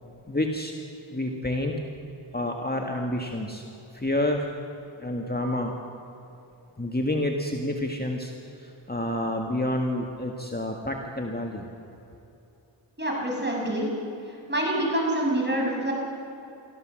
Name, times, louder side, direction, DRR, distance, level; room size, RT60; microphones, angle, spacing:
voice 1, 0.3-0.7 1.1-1.7 2.3-3.6 3.9-4.5 5.0-5.7 6.8-11.7, left 1 dB, 20° left, 2 dB, 1.8 m, -29 dB
voice 2, 13.0-13.9 14.5-15.9, right 1 dB, 25° right, -2 dB, 6.8 m, -26 dB
24.0 x 15.0 x 7.6 m, 2.8 s
wide cardioid pair, 50°, 46 cm